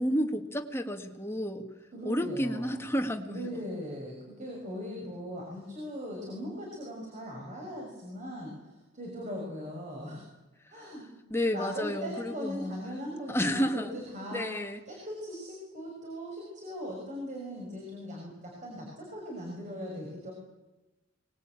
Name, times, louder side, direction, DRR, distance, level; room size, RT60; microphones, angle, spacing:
voice 1, 0.0-1.7 2.0-3.4 11.3-12.8 13.3-14.0 14.3-14.8, equal, 15° left, 4 dB, 1.8 m, -31 dB
voice 2, 1.9-2.9 3.2-10.2 10.7-11.1 11.5-14.5 14.9-20.3, equal, 40° right, -1 dB, 6.4 m, -39 dB
24.0 x 20.0 x 9.0 m, 1.1 s
head